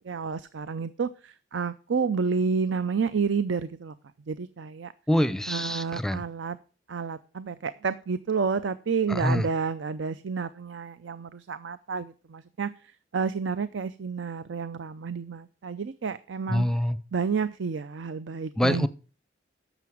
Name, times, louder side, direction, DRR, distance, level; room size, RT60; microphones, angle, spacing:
voice 1, 0.0-3.9 4.3-4.9 5.5-6.6 6.9-12.7 13.1-16.6 17.1-18.9, right 5 dB, 85° right, 0.5 m, -30 dB
voice 2, 5.1-6.2 9.1-9.5 16.5-17.0 18.6-18.9, left 1 dB, 5° left, 0.5 m, -25 dB
10.5 x 7.0 x 5.9 m
head